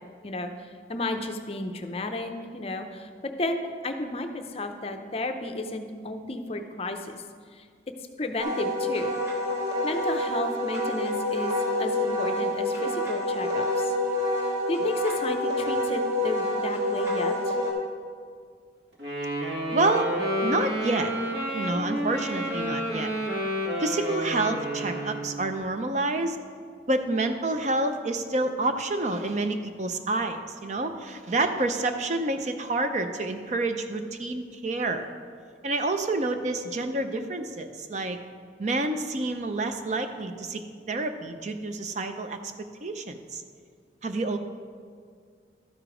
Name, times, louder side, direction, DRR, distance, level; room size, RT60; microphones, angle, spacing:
voice 1, 0.9-7.2 7.5-7.7 8.2-9.2 9.8-11.5 11.8-13.9 14.7-17.6, left 2 dB, 35° left, 6 dB, 0.5 m, -32 dB
Wind instrument woodwind instrument, 8.4-17.7, left 1 dB, 15° right, 1.5 m, -27 dB
Wind instrument woodwind instrument 2, 19.0-25.5, equal, 70° right, 1.6 m, -30 dB
voice 2, 19.7-20.1 20.4-21.1 21.5-23.1 23.8-26.4 26.9-35.1 35.6-38.2 38.6-40.6 40.9-42.4 42.8-43.4 44.0-44.4, right 2 dB, 40° right, 7 dB, 0.5 m, -28 dB
12.5 x 5.0 x 4.9 m, 2.1 s
head